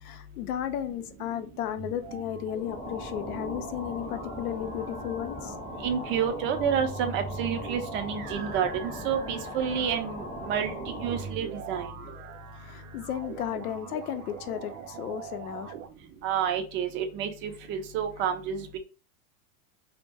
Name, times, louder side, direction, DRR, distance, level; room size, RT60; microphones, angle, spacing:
voice 1, 0.0-5.5 12.6-15.7, left 10 dB, 80° left, 0.6 m, -34 dB
sound 1, 1.8-15.9, right 7 dB, 70° right, 0.6 m, -43 dB
sound 2, 2.5-11.4, left 2 dB, 15° left, 0.6 m, -39 dB
voice 2, 5.8-10.7 11.0-11.9 16.2-18.8, right 8 dB, 30° right, 0.4 m, -29 dB
2.2 x 2.1 x 3.2 m
hypercardioid pair, 120°, 44 cm